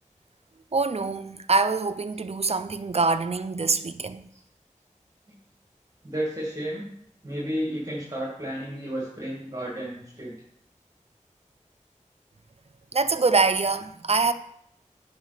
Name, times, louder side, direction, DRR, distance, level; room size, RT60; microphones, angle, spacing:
voice 1, 0.7-4.3 12.9-14.3, right 4 dB, 50° right, 0.5 m, -24 dB
voice 2, 6.0-6.9 7.2-10.4, equal, 25° right, 2.2 m, -32 dB
10.0 x 5.1 x 4.0 m
wide cardioid pair, 55°, 13 cm